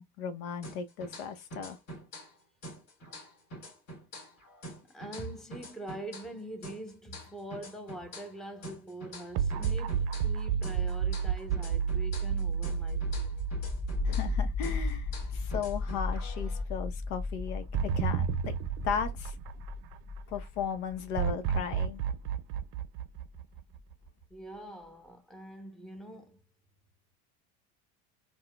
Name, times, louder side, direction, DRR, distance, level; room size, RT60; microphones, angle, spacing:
voice 1, 0.0-1.8 14.0-17.6 18.0-18.5 18.8-19.3 20.3-22.0, left 7 dB, 75° left, 0.9 m, -36 dB
sound 1, 0.6-2.4 2.6-6.4 6.6-10.4 10.6-14.4 14.6-16.6, equal, 55° left, 1.8 m, -46 dB
voice 2, 4.8-13.4 24.3-26.4, right 1 dB, ahead, 0.7 m, -44 dB
sound 2, 9.3-15.7 16.1-16.2 17.7-20.2 21.2-23.9, right 7 dB, 60° right, 0.6 m, -32 dB
sound 3, 12.6-23.3, left 3 dB, 25° left, 0.9 m, -36 dB
4.0 x 2.3 x 2.2 m
supercardioid pair, 90°, 43 cm